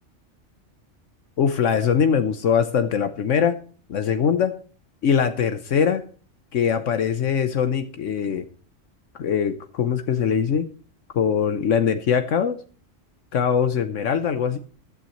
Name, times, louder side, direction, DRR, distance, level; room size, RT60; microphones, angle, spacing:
voice 1, 1.4-3.6 3.9-4.6 5.0-6.0 6.5-8.4 9.2-10.7 11.1-12.6 13.3-14.6, left 7 dB, 80° left, 9 dB, 1.2 m, -22 dB
15.0 x 12.0 x 3.1 m, 0.39 s
omnidirectional pair, 1.3 m